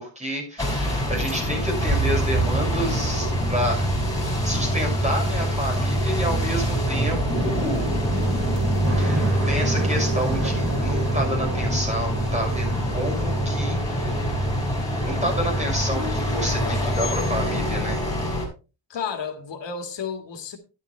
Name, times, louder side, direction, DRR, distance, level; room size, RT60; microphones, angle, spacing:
voice 1, 0.0-3.9 4.4-7.8 9.0-14.1 15.0-18.0, equal, 15° right, 6.3 m, -29 dB
sound 1, 0.6-18.5, equal, 10° left, 6.0 m, -25 dB
sound 2, 6.9-15.6 15.8-16.7, right 2 dB, 35° right, 3.2 m, -31 dB
voice 2, 16.6-17.4 18.9-20.6, left 6 dB, 75° left, 2.0 m, -34 dB
11.5 x 10.5 x 3.3 m
wide cardioid pair, 150°, 44 cm